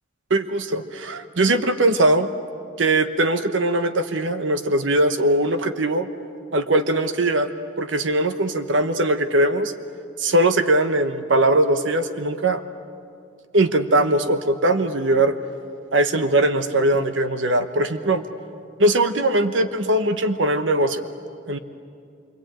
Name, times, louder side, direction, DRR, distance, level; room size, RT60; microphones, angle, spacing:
voice 1, 0.3-2.3 2.8-6.1 6.5-7.5 7.8-9.7 10.2-12.6 13.5-15.3 15.9-18.2 18.8-21.0 21.5-21.6, right 1 dB, 80° right, 9 dB, 1.1 m, -20 dB
27.0 x 24.5 x 8.9 m, 2.4 s
head